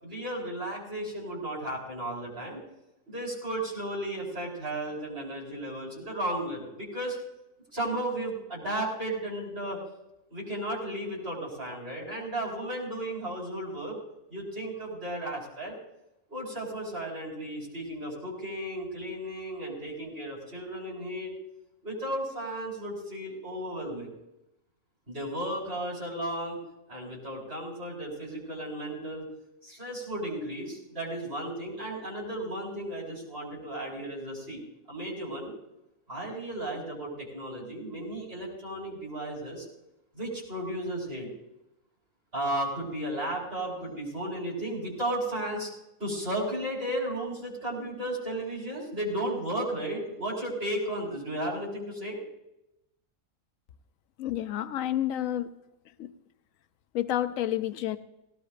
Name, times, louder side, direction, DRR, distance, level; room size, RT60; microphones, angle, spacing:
voice 1, 0.0-2.6 3.1-7.2 7.7-9.8 10.3-14.0 14.3-15.7 16.3-21.3 21.8-24.1 25.1-26.6 26.9-29.2 29.6-34.6 34.9-35.5 36.1-39.7 40.1-41.3 42.3-45.7 46.0-52.2, right 1 dB, 45° right, -3 dB, 5.0 m, -34 dB
voice 2, 54.2-55.5 56.0-56.1 56.9-58.0, left 12 dB, 80° left, 11 dB, 1.1 m, -29 dB
18.5 x 17.5 x 2.6 m, 0.88 s
omnidirectional pair, 1.4 m